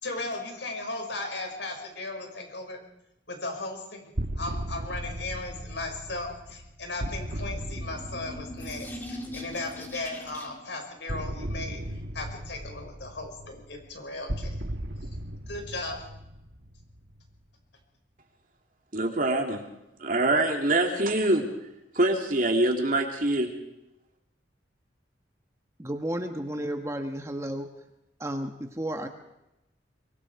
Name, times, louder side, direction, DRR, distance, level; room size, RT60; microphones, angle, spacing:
voice 1, 0.0-2.8 3.3-4.0 4.4-11.8 12.1-14.5 15.5-16.0, left 2 dB, 70° left, 5.9 m, -36 dB
sound 1, 4.2-9.9 11.1-17.4, right 1 dB, 70° right, 1.8 m, -37 dB
sound 2, 7.5-10.7, left 1 dB, 10° left, 2.6 m, -41 dB
voice 2, 18.9-19.6 20.0-21.5 21.9-23.5, right 2 dB, 45° right, 2.8 m, -24 dB
voice 3, 25.8-27.7 28.2-29.1, right 1 dB, 15° right, 1.3 m, -32 dB
24.0 x 23.5 x 4.8 m
head